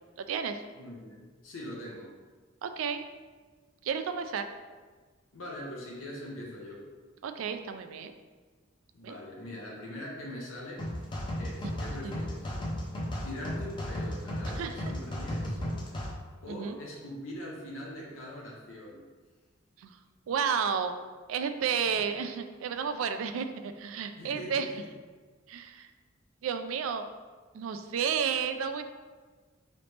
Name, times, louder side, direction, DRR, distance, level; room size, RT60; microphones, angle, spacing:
voice 1, 0.2-0.6 2.6-3.0 3.8-4.5 7.2-8.1 9.0-9.2 12.0-12.1 14.6-14.7 16.5-16.8 19.8-19.9 20.3-21.0 21.3-24.7 25.5-25.9 26.4-27.1 27.5-28.8, right 7 dB, 85° right, 9 dB, 0.3 m, -32 dB
voice 2, 0.7-2.1 5.3-6.9 8.9-11.1 11.4-12.5 13.2-15.6 16.4-19.0 21.9-22.1 24.2-24.9, left 1 dB, 80° left, -3 dB, 0.7 m, -42 dB
sound 1, 10.8-16.1, left 1 dB, 25° left, 0.6 m, -35 dB
3.9 x 3.2 x 3.2 m, 1.4 s
head